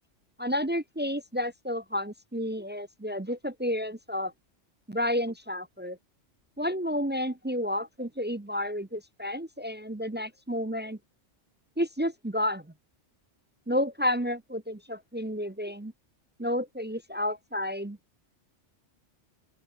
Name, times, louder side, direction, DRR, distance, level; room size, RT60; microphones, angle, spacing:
voice 1, 0.4-4.3 4.9-6.0 6.6-11.0 11.8-12.6 13.7-15.9 16.4-18.0, equal, 15° right, 0.4 m, -31 dB
open air
omnidirectional pair, 1.2 m